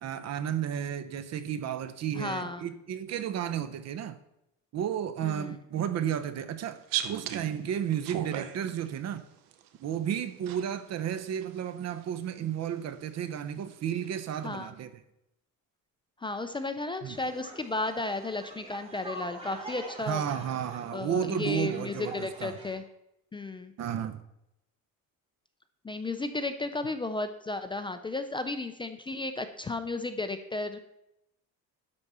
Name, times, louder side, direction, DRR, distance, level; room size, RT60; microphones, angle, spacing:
voice 1, 0.0-4.2 4.7-6.8 7.1-9.2 9.8-14.9 17.0-17.2 20.1-22.6 23.8-24.2, right 9 dB, 50° right, 0.8 m, -32 dB
voice 2, 2.1-2.7 5.2-5.5 14.4-14.7 16.2-20.2 20.9-22.8 23.3-23.7 25.8-30.8, left 2 dB, 15° left, 0.4 m, -34 dB
sound 1, 6.8-9.7 10.4-11.0 11.3-12.4 13.3-13.4 13.9-14.2, right 11 dB, 80° right, 0.9 m, -36 dB
sound 2, 17.1-22.7, right 2 dB, 15° right, 1.9 m, -45 dB
10.5 x 4.1 x 6.7 m
cardioid pair, 135°, 34 cm